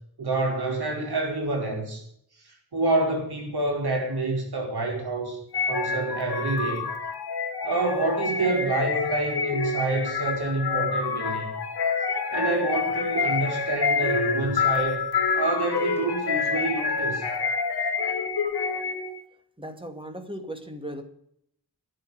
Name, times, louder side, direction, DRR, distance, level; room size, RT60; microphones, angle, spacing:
voice 1, 0.2-2.0 2.4-5.4 5.7-6.8 7.6-11.5 12.3-15.0 15.3-17.2, right 2 dB, 70° right, 2 dB, 5.0 m, -27 dB
sound 1, 5.5-19.2, left 4 dB, 70° left, 2.5 m, -27 dB
voice 2, 19.6-21.0, right 1 dB, 15° right, 7 dB, 2.4 m, -37 dB
12.0 x 9.3 x 9.5 m, 0.70 s
wide cardioid pair, 105°, 40 cm